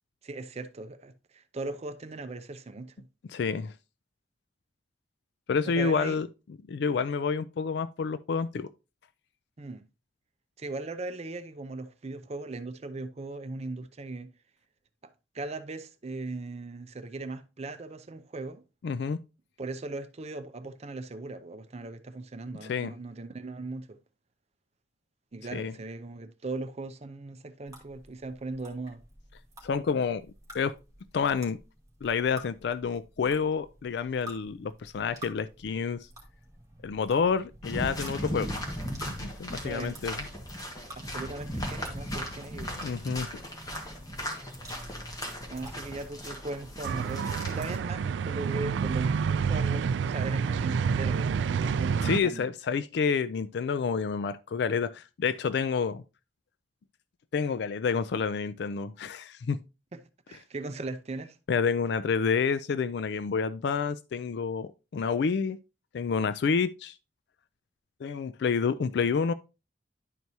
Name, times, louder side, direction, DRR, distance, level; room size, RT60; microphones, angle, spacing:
voice 1, 0.2-3.1 5.7-6.2 9.6-9.8 10.6-14.3 15.0-18.6 19.6-24.0 25.3-29.0 39.6-40.0 41.0-42.9 45.5-52.5 59.9-60.0 60.3-61.4, right 2 dB, 40° right, 0.6 m, -38 dB
voice 2, 3.3-3.7 5.5-6.3 6.7-8.7 18.8-19.2 22.6-22.9 25.5-25.7 29.6-30.3 30.5-30.7 31.1-31.6 32.0-36.1 36.8-38.5 39.0-40.2 42.8-43.3 52.0-56.0 57.3-59.6 61.5-65.6 65.9-67.0 68.0-69.3, left 5 dB, 70° left, 0.4 m, -29 dB
sound 1, 27.7-46.2, equal, 20° right, 2.1 m, -50 dB
sound 2, 37.6-47.8, equal, 20° left, 1.6 m, -37 dB
sound 3, 46.8-52.2, right 6 dB, 85° right, 0.3 m, -28 dB
11.0 x 4.6 x 2.7 m
head